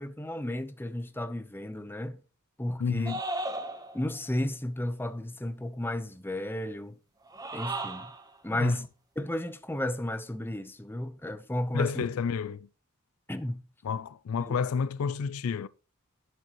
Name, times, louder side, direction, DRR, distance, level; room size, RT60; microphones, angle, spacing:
voice 1, 0.0-2.2 2.6-3.1 3.9-7.0 7.5-8.1 8.4-8.9 9.2-12.0 13.3-13.6 14.4-14.6, left 1 dB, 10° left, 0.7 m, -33 dB
voice 2, 2.8-3.2 8.5-8.8 11.7-12.7 13.8-15.7, left 6 dB, 70° left, 0.4 m, -30 dB
sound 1, 3.1-4.2 7.3-8.3, right 2 dB, 15° right, 1.0 m, -35 dB
11.0 x 7.9 x 3.0 m
head